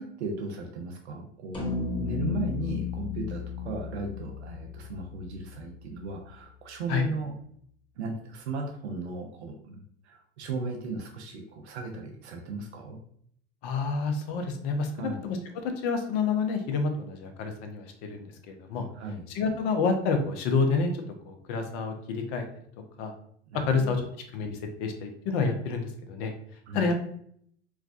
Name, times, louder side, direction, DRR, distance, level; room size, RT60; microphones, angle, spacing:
voice 1, 0.0-7.3 8.0-13.0 14.9-15.2 18.9-19.3 23.5-24.0 26.7-26.9, right 3 dB, 85° right, 2 dB, 0.7 m, -36 dB
sound 1, 1.5-6.0, left 6 dB, 15° left, 1.2 m, -34 dB
voice 2, 13.6-15.4 15.8-18.9 19.3-20.9 21.2-22.4 23.0-23.1 23.6-24.0 24.3-26.3 26.7-27.0, left 4 dB, 65° left, 5 dB, 0.8 m, -28 dB
4.6 x 2.3 x 2.5 m, 0.64 s
hypercardioid pair, 90°, 32 cm